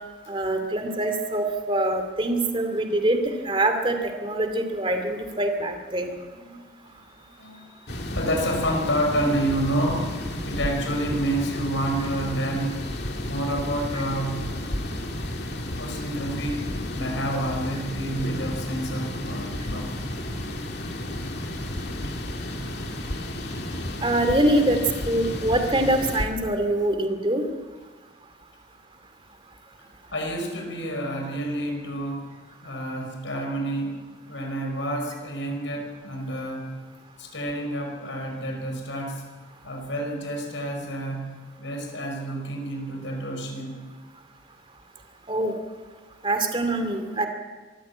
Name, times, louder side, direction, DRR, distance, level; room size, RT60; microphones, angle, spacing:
voice 1, 0.3-4.0 4.2-6.1 24.0-24.8 25.1-27.5 45.3-45.5 46.2-47.3, right 1 dB, 25° right, 6 dB, 2.4 m, -24 dB
voice 2, 6.8-10.2 10.4-12.8 13.3-14.5 15.8-19.9 30.1-32.3 32.6-34.0 34.3-36.8 37.2-39.3 39.6-43.8, right 1 dB, 85° left, 2 dB, 5.9 m, -29 dB
sound 1, 7.9-26.3, left 1 dB, 60° left, 2.5 m, -32 dB
24.5 x 14.5 x 8.6 m, 1.4 s
head